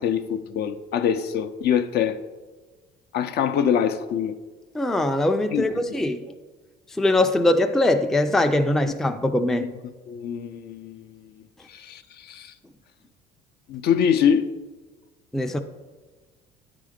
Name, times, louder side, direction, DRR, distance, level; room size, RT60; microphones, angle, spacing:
voice 1, 0.0-2.2 3.1-4.4 5.5-5.6 9.6-9.7 10.1-11.2 11.7-12.5 13.7-14.5, left 8 dB, 55° left, 0.5 m, -24 dB
voice 2, 4.7-6.3 7.0-9.7 15.3-15.6, left 1 dB, ahead, 0.4 m, -22 dB
9.0 x 3.8 x 5.0 m
supercardioid pair, 95°, 19 cm